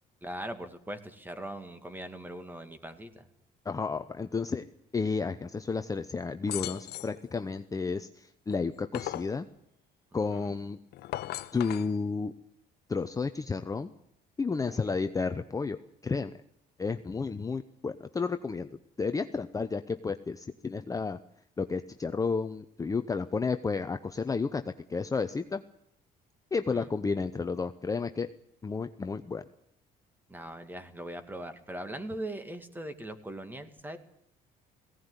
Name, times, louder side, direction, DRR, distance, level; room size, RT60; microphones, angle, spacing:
voice 1, 0.2-3.3 10.3-10.6 14.7-14.9 26.7-26.9 30.3-34.0, right 1 dB, 10° right, 9 dB, 2.3 m, -40 dB
voice 2, 3.6-4.7 4.9-9.5 10.1-10.8 11.5-12.3 12.9-13.9 14.4-15.8 16.0-16.4 16.8-18.7 19.0-21.2 21.6-24.6 24.9-25.6 26.5-28.3 28.6-29.4, left 4 dB, 20° left, 9 dB, 0.8 m, -31 dB
sound 1, 6.5-7.2 8.5-9.4 10.9-11.9, left 14 dB, 70° left, 0.9 m, -37 dB
17.5 x 17.0 x 9.8 m, 0.71 s
cardioid pair, 110°, 17 cm